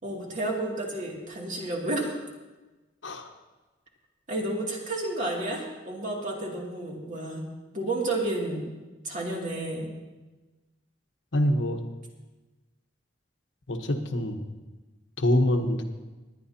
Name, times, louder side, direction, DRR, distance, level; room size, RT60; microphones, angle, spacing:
voice 1, 0.0-2.3 4.3-7.4 7.7-8.7 9.0-9.9, right 2 dB, 45° right, -2 dB, 2.5 m, -31 dB
voice 2, 11.3-11.8 13.7-14.4 15.2-15.8, left 1 dB, 75° left, 5 dB, 1.1 m, -25 dB
21.0 x 10.0 x 2.8 m, 1.2 s
head